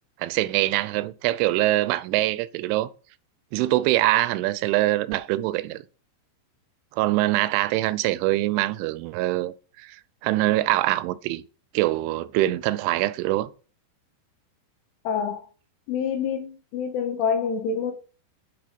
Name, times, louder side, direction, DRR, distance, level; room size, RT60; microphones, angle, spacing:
voice 1, 0.2-2.9 3.5-5.8 6.9-10.0 10.2-11.4 11.7-13.5, right 16 dB, 90° right, 3.1 m, -24 dB
voice 2, 15.1-15.5 15.9-17.9, left 6 dB, 85° left, 4.1 m, -27 dB
9.7 x 6.3 x 5.1 m
omnidirectional pair, 5.4 m